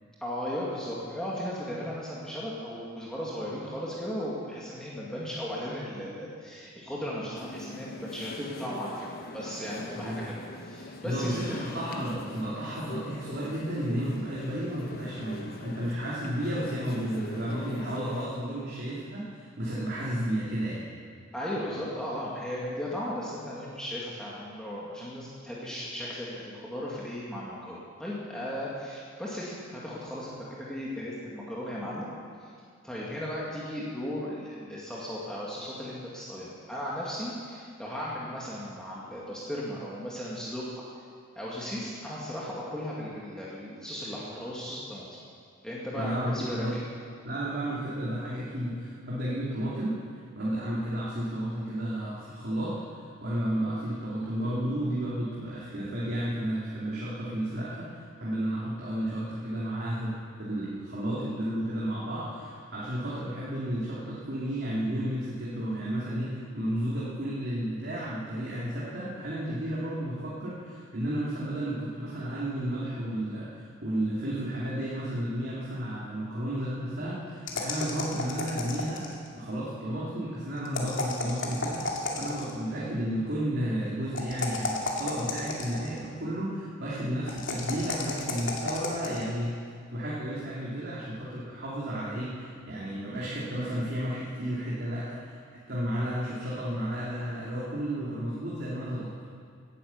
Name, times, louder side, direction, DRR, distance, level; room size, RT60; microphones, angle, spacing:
voice 1, 0.2-9.1 9.3-10.4 10.6-11.8 21.3-32.1 32.8-40.8 41.4-45.1 45.6-46.6, equal, 5° left, -7 dB, 2.0 m, -36 dB
sound 1, 7.3-18.3, left 1 dB, 50° left, 1.2 m, -42 dB
voice 2, 11.0-20.8 45.9-46.8 47.2-50.0 50.3-52.8 53.2-60.1 60.4-89.5 89.9-99.1, right 1 dB, 55° right, -7 dB, 2.7 m, -32 dB
sound 2, 77.5-79.3 80.7-82.6 84.1-86.0 87.3-89.2, left 3 dB, 70° left, 2.3 m, -33 dB
17.0 x 10.0 x 7.1 m, 2.2 s
head